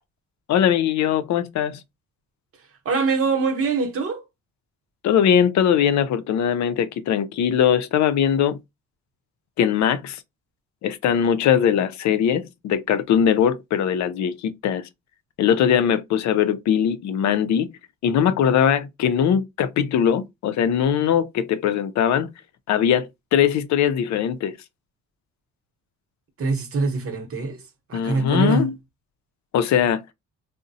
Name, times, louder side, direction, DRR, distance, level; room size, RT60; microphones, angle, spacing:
voice 1, 0.5-1.8 5.0-8.6 9.6-10.2 10.8-14.8 15.4-17.7 18.0-22.3 22.7-24.5 27.9-28.7 29.5-30.0, left 8 dB, 65° left, 0.5 m, -21 dB
voice 2, 2.8-4.2 26.4-27.6 27.9-28.7, right 4 dB, 50° right, 0.9 m, -23 dB
3.7 x 2.1 x 2.6 m
cardioid pair, 90°, 30 cm